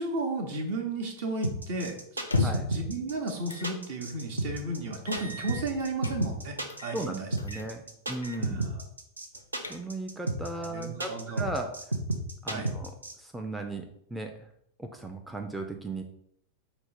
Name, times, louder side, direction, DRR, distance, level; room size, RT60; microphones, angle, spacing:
voice 1, 0.0-7.6 8.4-8.7 10.5-11.5 12.5-12.7, right 2 dB, 50° right, 4 dB, 0.9 m, -34 dB
sound 1, 1.4-13.1, right 2 dB, 80° right, 0.6 m, -32 dB
sound 2, 2.2-2.8 3.5-3.7 4.1-4.2 5.1-6.2 6.7-7.1 7.4-7.7 8.1-8.4 8.8-8.9 9.3-10.1, left 3 dB, 80° left, 0.4 m, -33 dB
voice 2, 6.9-8.6 9.7-11.7 12.4-12.9 13.2-14.3 14.8-16.0, right 2 dB, 5° right, 3 dB, 0.4 m, -36 dB
5.2 x 2.0 x 4.5 m, 0.72 s
figure-of-eight pair, 90°, 0 cm